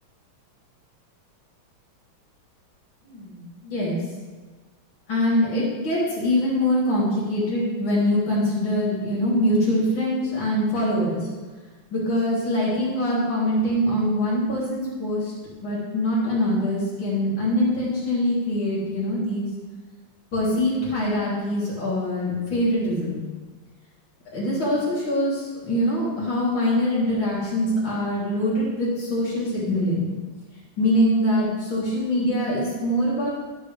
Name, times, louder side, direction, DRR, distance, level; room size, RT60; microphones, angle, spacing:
voice 1, 3.0-4.0 5.1-11.2 11.9-15.3 15.6-19.5 20.3-23.2 24.3-30.1 30.8-33.3, left 1 dB, 60° left, -8 dB, 4.1 m, -23 dB
12.5 x 9.7 x 3.4 m, 1.4 s
omnidirectional pair, 2.3 m